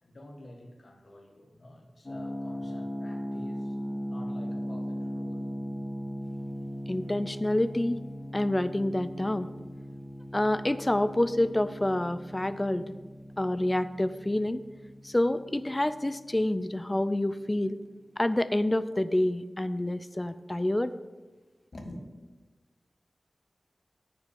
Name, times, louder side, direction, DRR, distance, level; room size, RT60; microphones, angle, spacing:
voice 1, 0.0-3.8 4.0-5.5 21.7-22.0, left 1 dB, 60° left, 2 dB, 1.7 m, -48 dB
sound 1, 2.1-16.8, equal, 40° left, 1.4 m, -39 dB
voice 2, 6.9-8.0 8.3-9.5 10.3-12.9 13.4-14.6 15.0-17.8 18.2-20.9, left 1 dB, 25° left, 13 dB, 0.5 m, -27 dB
9.4 x 5.1 x 7.2 m, 1.3 s
cardioid pair, 45°, 0 cm